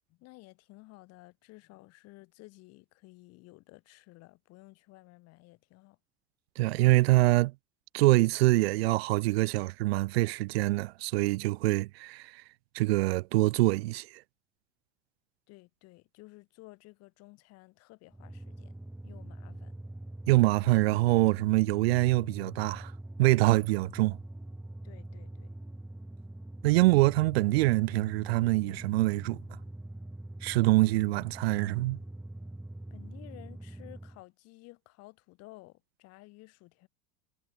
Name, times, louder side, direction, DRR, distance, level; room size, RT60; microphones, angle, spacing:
voice 1, 0.1-6.0 15.5-18.7 19.0-19.8 24.8-25.5 32.9-36.9, left 21 dB, 55° left, 6.8 m, -54 dB
voice 2, 6.6-7.5 7.9-12.4 12.7-14.2 20.3-22.9 23.2-24.2 26.6-29.4 30.4-32.0, right 20 dB, 85° right, 1.6 m, -25 dB
sound 1, 18.1-34.2, right 1 dB, 5° right, 7.6 m, -44 dB
supercardioid pair, 130°, 30 cm